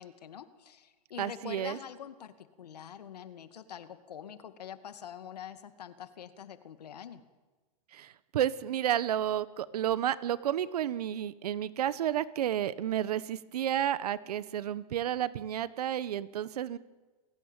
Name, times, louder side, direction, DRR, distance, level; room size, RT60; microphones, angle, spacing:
voice 1, 0.0-7.2, left 8 dB, 85° left, 10 dB, 2.3 m, -45 dB
voice 2, 1.2-1.8 7.9-16.8, right 11 dB, 75° right, 16 dB, 1.3 m, -31 dB
28.5 x 17.5 x 9.1 m, 1.3 s
hypercardioid pair, 135°, 20 cm